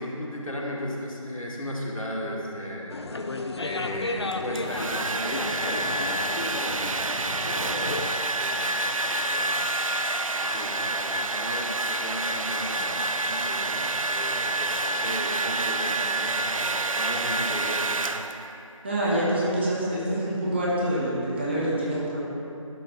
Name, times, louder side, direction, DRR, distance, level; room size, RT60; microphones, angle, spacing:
voice 1, 0.0-3.0 3.6-9.8 10.4-18.0, left 1 dB, 80° left, -3 dB, 1.7 m, -36 dB
sound 1, 2.9-8.1, left 2 dB, 50° left, 0.5 m, -33 dB
Domestic sounds home sounds, 4.3-18.6, right 2 dB, 75° right, 0.5 m, -28 dB
voice 2, 18.8-22.2, right 1 dB, 20° right, -7 dB, 1.1 m, -26 dB
12.0 x 4.1 x 5.1 m, 2.8 s
figure-of-eight pair, 165°, 17 cm